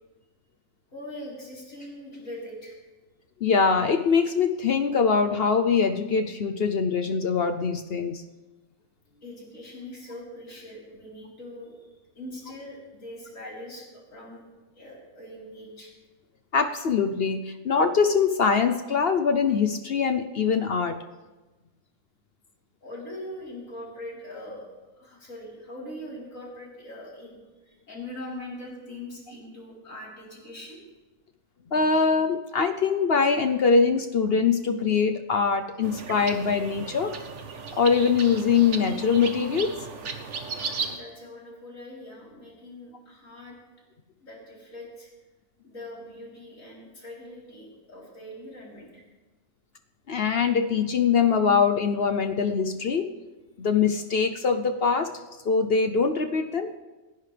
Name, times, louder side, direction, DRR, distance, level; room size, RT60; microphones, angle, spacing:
voice 1, 0.9-2.8 9.2-14.4 14.7-15.9 22.8-27.4 27.6-30.8 40.8-43.6 44.2-45.1 45.6-49.0, left 1 dB, 75° left, -5 dB, 4.5 m, -42 dB
voice 2, 3.4-8.2 16.5-21.0 31.7-37.1 37.8-39.7 50.1-53.1 53.6-55.1 55.5-56.7, left 5 dB, 55° left, 7 dB, 0.9 m, -23 dB
sound 1, 35.8-41.0, right 5 dB, 60° right, 1.4 m, -36 dB
28.5 x 10.5 x 3.4 m, 1.2 s
omnidirectional pair, 1.4 m